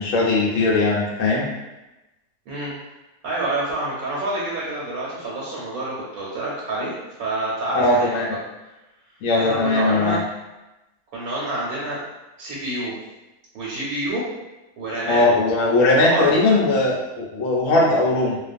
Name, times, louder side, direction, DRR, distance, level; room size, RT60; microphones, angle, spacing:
voice 1, 0.0-1.5 7.7-8.3 9.2-10.2 15.1-18.4, left 2 dB, 70° left, -3 dB, 0.9 m, -19 dB
voice 2, 3.2-6.9 7.2-8.2 9.4-10.2 11.1-12.0 12.4-13.0 13.5-14.2 14.8-15.2 16.0-16.3, right 2 dB, 75° right, -6 dB, 1.1 m, -27 dB
2.4 x 2.3 x 2.5 m, 1.0 s
omnidirectional pair, 1.6 m